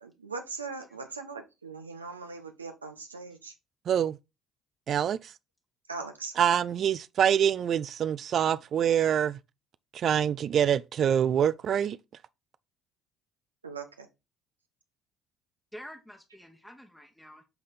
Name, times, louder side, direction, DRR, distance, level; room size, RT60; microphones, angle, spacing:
voice 1, 0.0-3.5 5.9-6.3 13.6-14.1, right 4 dB, 90° right, 0.8 m, -40 dB
voice 2, 3.9-4.2 4.9-5.3 6.4-9.4 9.9-12.0, right 9 dB, 50° right, 0.3 m, -25 dB
voice 3, 15.7-17.4, equal, 5° left, 1.1 m, -48 dB
7.7 x 3.6 x 4.1 m
figure-of-eight pair, 55°, 0 cm